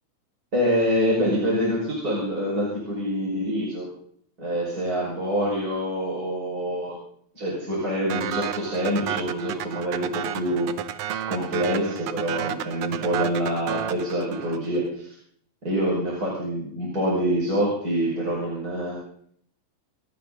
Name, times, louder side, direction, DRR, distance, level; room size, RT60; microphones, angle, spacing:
voice 1, 0.5-3.9 4.4-6.9 7.3-10.7 11.3-15.2 15.6-19.0, equal, 30° right, -5 dB, 5.9 m, -26 dB
sound 1, 8.1-14.8, right 10 dB, 70° right, 1.4 m, -31 dB
29.0 x 10.5 x 4.0 m, 0.63 s
omnidirectional pair, 3.5 m